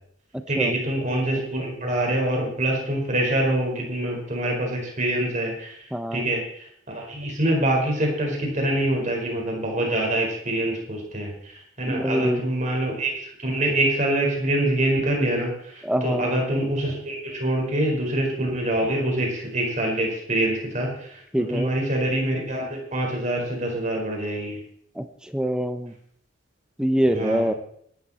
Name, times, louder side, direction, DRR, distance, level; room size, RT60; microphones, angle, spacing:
voice 1, 0.5-24.6 27.1-27.5, right 1 dB, 35° right, 0 dB, 4.8 m, -25 dB
voice 2, 5.9-6.3 11.9-12.4 15.8-16.3 21.3-21.7 25.0-25.9 26.8-27.5, equal, 5° right, 8 dB, 0.8 m, -24 dB
18.0 x 13.0 x 4.3 m, 0.69 s
head